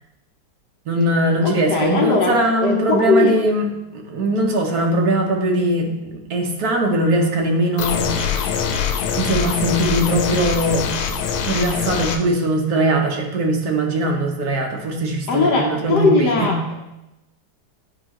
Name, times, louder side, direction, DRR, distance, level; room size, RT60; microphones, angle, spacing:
voice 1, 0.9-8.6 9.1-10.9 11.4-16.5, right 1 dB, 60° right, 1 dB, 1.1 m, -21 dB
voice 2, 1.4-2.4 2.6-3.4 15.3-16.7, left 3 dB, 60° left, 0 dB, 1.2 m, -19 dB
sound 1, 7.8-12.2, left 7 dB, 85° left, 1.5 m, -23 dB
9.9 x 4.0 x 2.9 m, 0.95 s
omnidirectional pair, 2.3 m